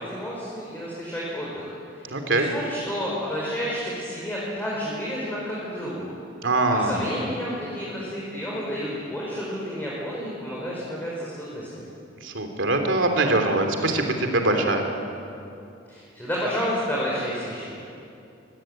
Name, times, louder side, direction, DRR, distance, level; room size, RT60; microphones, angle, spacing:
voice 1, 0.0-6.1 6.7-11.9 15.9-17.8, equal, 10° left, -6 dB, 5.2 m, -31 dB
voice 2, 2.1-2.5 6.4-7.0 12.2-14.8, right 2 dB, 70° right, 4 dB, 3.3 m, -23 dB
24.5 x 19.5 x 9.1 m, 2.6 s
head